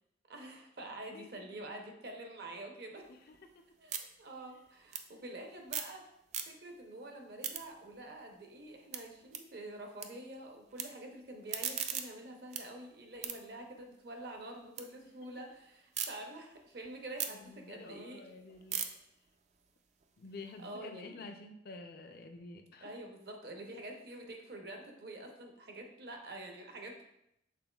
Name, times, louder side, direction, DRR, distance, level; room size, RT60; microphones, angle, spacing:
voice 1, 0.3-3.1 3.8-6.0 6.5-18.2 20.6-21.2 22.8-27.0, right 1 dB, 60° right, 2 dB, 0.7 m, -47 dB
voice 2, 0.8-1.5 3.1-3.4 17.3-18.8 20.2-22.9, left 3 dB, 55° left, 5 dB, 0.5 m, -50 dB
sound 1, 3.0-6.0 6.2-6.9 7.2-10.1 10.4-10.8 11.3-14.9 15.2-16.1 16.5-20.7, right 8 dB, 40° right, 0.3 m, -42 dB
6.0 x 3.7 x 2.3 m, 0.79 s
head